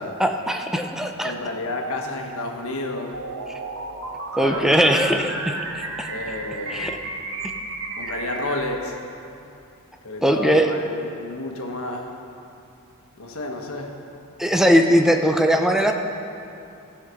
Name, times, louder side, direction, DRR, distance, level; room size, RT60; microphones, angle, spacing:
voice 1, 0.2-1.3 4.4-6.1 6.7-6.9 10.2-10.7 14.4-15.9, equal, ahead, 4 dB, 0.6 m, -20 dB
voice 2, 1.2-3.2 4.3-4.8 6.1-7.1 8.0-9.0 10.0-12.2 13.2-14.0, left 2 dB, 65° left, 2 dB, 1.2 m, -31 dB
sound 1, 3.1-8.6, right 2 dB, 60° right, 1.2 m, -32 dB
15.0 x 5.8 x 6.2 m, 2.7 s
head